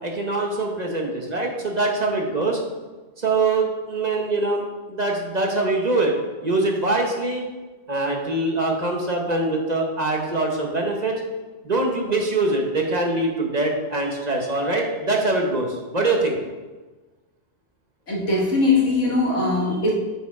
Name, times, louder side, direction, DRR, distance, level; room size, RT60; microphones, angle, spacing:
voice 1, 0.0-2.6 3.2-4.6 4.9-6.1 6.4-7.4 7.9-11.2 11.6-15.7 15.9-16.4, right 2 dB, 35° right, 1 dB, 1.0 m, -23 dB
voice 2, 18.1-19.9, left 3 dB, 80° left, -2 dB, 2.0 m, -20 dB
7.9 x 4.7 x 4.8 m, 1.2 s
omnidirectional pair, 1.2 m